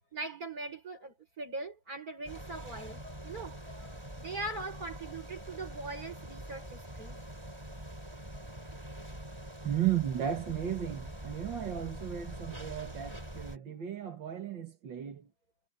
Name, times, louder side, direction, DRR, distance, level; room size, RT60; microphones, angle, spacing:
voice 1, 0.0-7.2, right 2 dB, 50° right, 6.3 m, -41 dB
sound 1, 2.3-13.6, right 1 dB, 15° right, 4.7 m, -44 dB
voice 2, 9.6-15.3, right 10 dB, 85° right, 2.4 m, -34 dB
omnidirectional pair, 2.0 m